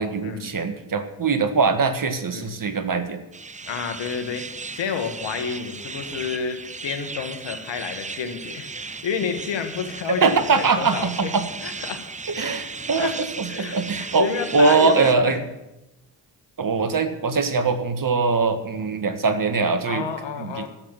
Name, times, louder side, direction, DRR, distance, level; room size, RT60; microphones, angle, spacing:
voice 1, 0.0-3.2 10.1-11.5 12.3-15.4 16.6-20.1 20.4-20.7, right 4 dB, 45° right, 9 dB, 1.7 m, -22 dB
sound 1, 3.3-15.1, right 4 dB, 15° right, 0.6 m, -36 dB
voice 2, 3.7-4.4 4.7-11.3 11.6-12.0 13.0-13.1 13.5-15.4 19.9-20.7, left 6 dB, 75° left, 7 dB, 1.8 m, -30 dB
12.0 x 7.6 x 8.9 m, 0.94 s
supercardioid pair, 45°, 45 cm